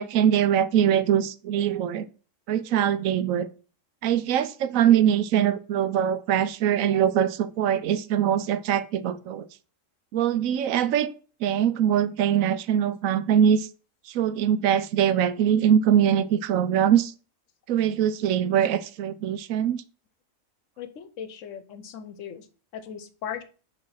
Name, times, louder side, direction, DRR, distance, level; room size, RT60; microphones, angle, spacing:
voice 1, 0.0-2.1 2.5-3.5 4.0-9.5 10.1-11.1 11.4-13.7 14.1-17.1 17.7-19.8, right 9 dB, 80° right, 1.0 m, -22 dB
voice 2, 20.8-22.4 22.7-23.4, left 8 dB, 70° left, 1.1 m, -38 dB
6.0 x 3.1 x 5.6 m
omnidirectional pair, 1.4 m